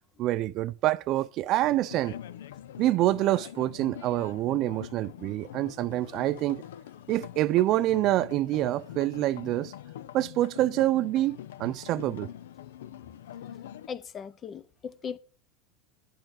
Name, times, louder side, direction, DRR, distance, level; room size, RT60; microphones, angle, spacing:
voice 1, 0.2-2.1 2.8-6.6 7.1-9.7 10.1-12.3, right 15 dB, 40° right, 0.4 m, -26 dB
sound 1, 1.6-13.9, left 11 dB, 90° left, 0.5 m, -44 dB
voice 2, 13.9-15.2, left 7 dB, 25° left, 0.5 m, -38 dB
8.9 x 5.8 x 6.2 m
supercardioid pair, 145°, 0 cm